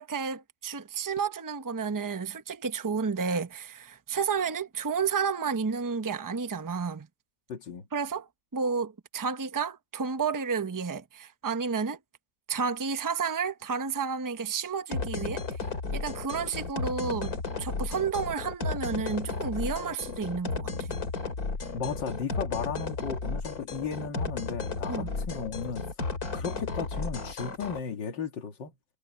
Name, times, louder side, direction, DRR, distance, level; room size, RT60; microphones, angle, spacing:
voice 1, 0.0-7.1 7.9-12.0 12.5-15.4 15.9-20.9 24.9-25.1, right 5 dB, 20° right, 0.5 m, -31 dB
voice 2, 7.5-7.9 21.7-25.9 26.3-28.7, left 6 dB, 85° left, 2.5 m, -35 dB
sound 1, 14.9-27.8, left 4 dB, 55° left, 3.1 m, -34 dB
omnidirectional pair, 1.9 m